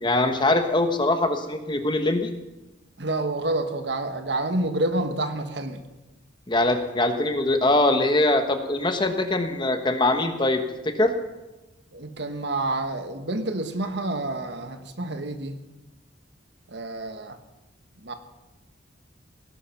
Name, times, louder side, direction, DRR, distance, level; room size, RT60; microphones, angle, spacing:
voice 1, 0.0-2.3 6.5-11.1, left 2 dB, 25° left, 7 dB, 1.2 m, -22 dB
voice 2, 3.0-5.8 11.9-15.6 16.7-17.4 18.0-18.1, right 2 dB, 65° right, 7 dB, 1.4 m, -28 dB
17.5 x 11.5 x 5.9 m, 1.1 s
head